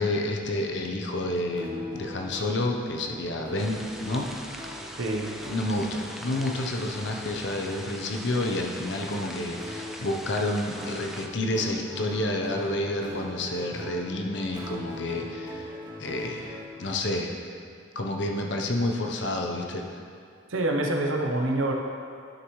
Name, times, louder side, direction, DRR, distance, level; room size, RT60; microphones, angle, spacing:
voice 1, 0.0-4.6 5.5-15.7 16.0-17.4 17.9-20.0, left 1 dB, 65° left, 2 dB, 0.8 m, -29 dB
sound 1, 1.6-16.8, left 1 dB, 20° right, 0.9 m, -42 dB
sound 2, 3.6-11.3, equal, ahead, 0.3 m, -41 dB
voice 2, 5.0-5.3 20.5-21.7, right 1 dB, 90° right, 1 dB, 0.9 m, -26 dB
11.0 x 6.5 x 3.1 m, 2.3 s
head